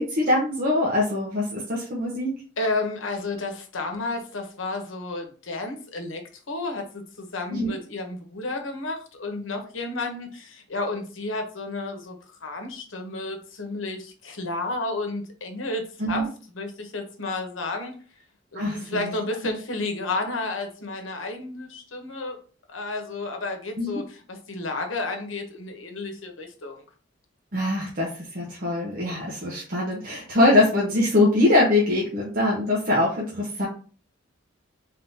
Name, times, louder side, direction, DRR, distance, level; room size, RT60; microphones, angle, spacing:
voice 1, 0.0-2.3 7.5-7.7 16.0-16.3 18.5-19.1 23.8-24.0 27.5-33.7, left 2 dB, 50° right, -4 dB, 1.0 m, -23 dB
voice 2, 2.6-6.2 6.5-12.1 12.4-16.3 16.5-17.9 18.5-22.4 22.7-26.8, left 2 dB, 85° left, 4 dB, 1.0 m, -31 dB
3.8 x 3.6 x 2.8 m, 0.39 s
head